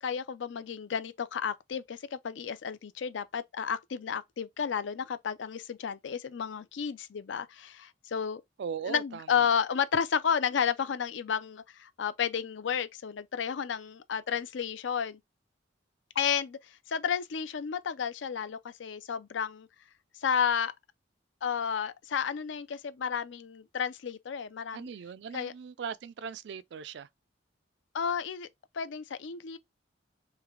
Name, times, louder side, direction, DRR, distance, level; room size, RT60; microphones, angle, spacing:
voice 1, 0.0-8.4 8.8-15.2 16.2-19.7 20.2-20.7 21.4-24.9 25.3-25.5 27.9-28.5 28.7-29.6, left 7 dB, 75° left, 0.4 m, -32 dB
voice 2, 8.6-9.5 24.7-27.1, right 6 dB, 60° right, 0.3 m, -39 dB
3.3 x 3.1 x 3.6 m
head